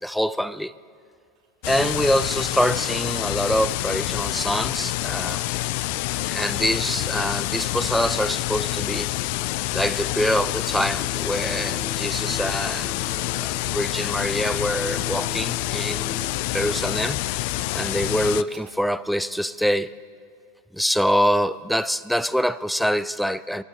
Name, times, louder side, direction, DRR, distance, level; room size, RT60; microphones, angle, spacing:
voice 1, 0.0-0.7 1.7-5.4 6.3-9.1 9.7-13.0 13.3-16.2 16.5-17.2 17.7-19.9 20.7-23.6, equal, ahead, 0.5 m, -25 dB
sound 1, 1.3-2.7 4.0-5.9 6.9-7.2 8.9-9.2 9.7-11.1 11.9-12.0 12.3-13.7 14.5-14.6 15.1-16.6 17.3-17.4 17.6-19.2 19.6-19.7, right 6 dB, 55° right, 5.0 m, -56 dB
sound 2, 1.6-18.4, left 18 dB, 55° left, 0.4 m, -27 dB
sound 3, 9.5-16.9, right 2 dB, 20° right, 2.4 m, -44 dB
25.0 x 12.5 x 4.0 m
figure-of-eight pair, 85°, 0 cm